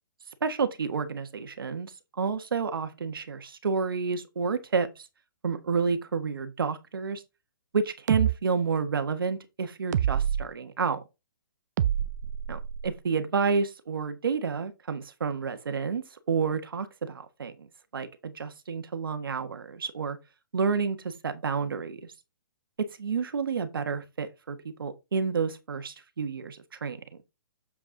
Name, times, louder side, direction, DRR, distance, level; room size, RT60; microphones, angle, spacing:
voice 1, 0.4-1.9 2.2-5.1 5.4-7.2 7.7-11.0 12.5-17.7 17.9-20.2 20.5-22.0 22.8-27.0, right 5 dB, 85° right, 1.3 m, -30 dB
sound 1, 8.1-8.3 9.9-10.5 11.8-12.9, right 10 dB, 55° right, 0.5 m, -26 dB
7.3 x 4.8 x 3.7 m
hypercardioid pair, 150°, 11 cm